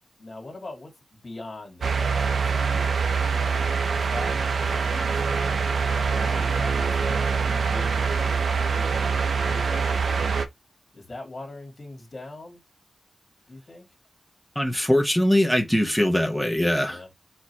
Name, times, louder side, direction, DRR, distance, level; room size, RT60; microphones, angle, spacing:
voice 1, 0.2-2.9 3.2-5.2 6.0-8.0 8.3-9.0 9.4-10.4 10.9-12.6 13.5-13.9 16.8-17.1, left 2 dB, 35° left, 2.2 m, -41 dB
sound 1, 1.8-10.5, right 5 dB, 80° right, 0.8 m, -24 dB
voice 2, 14.5-17.0, left 1 dB, ahead, 1.1 m, -22 dB
4.4 x 3.9 x 3.0 m
wide cardioid pair, 155°, 0 cm